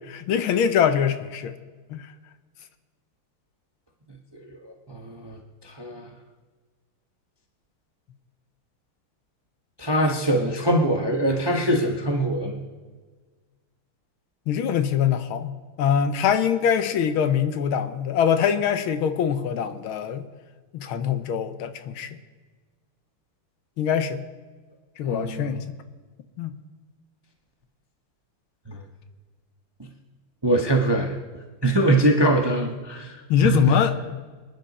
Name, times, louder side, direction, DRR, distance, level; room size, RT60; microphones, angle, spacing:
voice 1, 0.1-1.5 1.9-2.0 14.5-20.2 20.7-22.1 23.8-24.2 25.0-25.6 26.4-26.5 33.3-34.1, left 8 dB, 70° left, 10 dB, 1.6 m, -23 dB
voice 2, 4.3-5.4 5.6-6.1 9.8-12.6 25.0-25.6 28.7-28.8 30.4-31.1 31.6-33.8, right 1 dB, 20° right, 2 dB, 0.7 m, -23 dB
25.0 x 10.0 x 4.2 m, 1.4 s
omnidirectional pair, 2.4 m